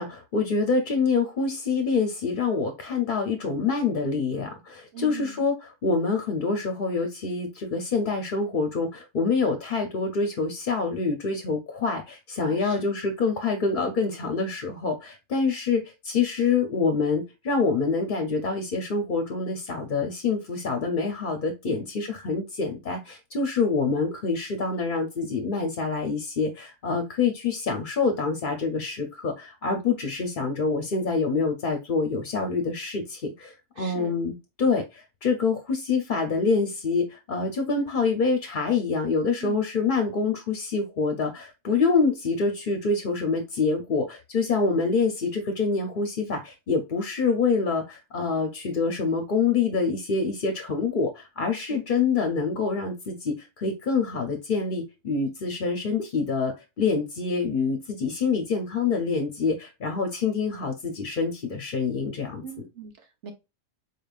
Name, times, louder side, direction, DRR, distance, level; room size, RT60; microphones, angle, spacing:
voice 1, 0.0-62.4, left 4 dB, 50° left, 0.8 m, -26 dB
voice 2, 4.9-5.4 12.5-12.9 21.6-21.9 33.8-34.2 39.4-39.6 51.7-51.8 62.4-63.3, right 6 dB, 75° right, 1.3 m, -40 dB
4.3 x 3.5 x 2.4 m
omnidirectional pair, 1.2 m